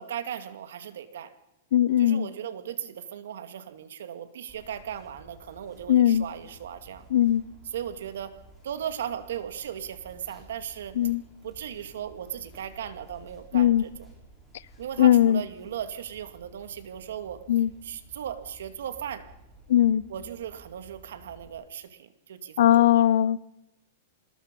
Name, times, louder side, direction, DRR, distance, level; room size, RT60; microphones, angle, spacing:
voice 1, 0.0-1.3 2.0-7.0 7.7-11.0 11.4-14.1 14.8-17.4 17.8-19.3 20.1-23.0, right 9 dB, 80° right, 2.3 m, -37 dB
voice 2, 1.7-2.3 5.9-6.3 7.1-7.4 11.0-11.2 13.5-13.8 15.0-15.4 17.5-17.7 19.7-20.0 22.6-23.4, left 11 dB, 65° left, 0.7 m, -19 dB
sound 1, 4.5-21.5, right 1 dB, ahead, 6.1 m, -53 dB
25.5 x 20.5 x 5.5 m
supercardioid pair, 160°, 0 cm